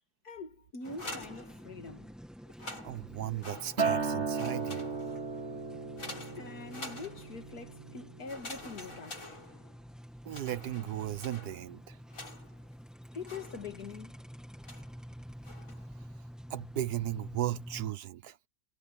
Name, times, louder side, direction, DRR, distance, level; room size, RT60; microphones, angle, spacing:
voice 1, 0.2-2.1 6.4-9.4 13.1-14.1, left 4 dB, 70° left, 2.7 m, -44 dB
sound 1, 0.8-2.1 2.5-4.1 4.3-5.3 6.0-7.5 8.3-9.9 10.3-12.7 13.3-14.0 14.6-15.0 15.4-15.9, left 1 dB, 55° left, 7.0 m, -47 dB
sound 2, 0.8-17.9, equal, ahead, 1.5 m, -49 dB
voice 2, 2.8-4.9 10.2-12.0 16.5-18.4, right 12 dB, 75° right, 1.3 m, -36 dB
Acoustic guitar, 3.8-8.2 8.6-9.0, right 5 dB, 45° right, 2.1 m, -35 dB
omnidirectional pair, 1.7 m